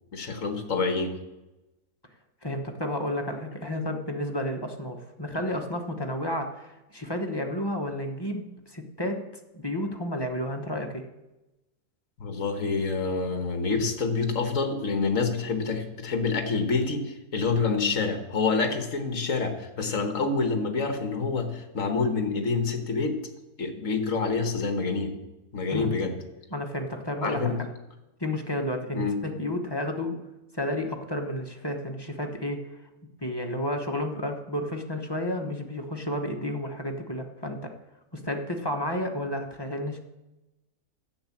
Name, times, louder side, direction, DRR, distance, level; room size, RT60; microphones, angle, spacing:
voice 1, 0.1-1.1 12.2-23.1 23.6-25.1 25.5-26.2 27.2-27.6 28.9-29.2, left 4 dB, 60° left, 7 dB, 1.8 m, -27 dB
voice 2, 2.4-9.2 9.5-11.0 25.7-25.9 26.5-27.6 28.2-30.2 30.5-32.6 33.2-37.7 38.1-40.0, left 1 dB, 20° left, 2 dB, 1.1 m, -31 dB
10.5 x 7.9 x 7.3 m, 1.0 s
omnidirectional pair, 1.6 m